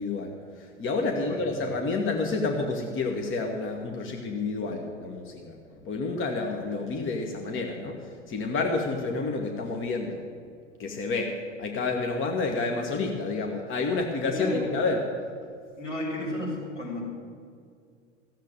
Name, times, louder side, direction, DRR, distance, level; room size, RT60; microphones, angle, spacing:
voice 1, 0.0-5.6 5.8-10.2 10.8-15.0, left 3 dB, 35° left, 2 dB, 1.5 m, -29 dB
voice 2, 14.3-14.7 15.8-17.0, left 1 dB, 80° left, -3 dB, 4.2 m, -32 dB
14.5 x 7.6 x 9.0 m, 2.2 s
figure-of-eight pair, 75°, 36 cm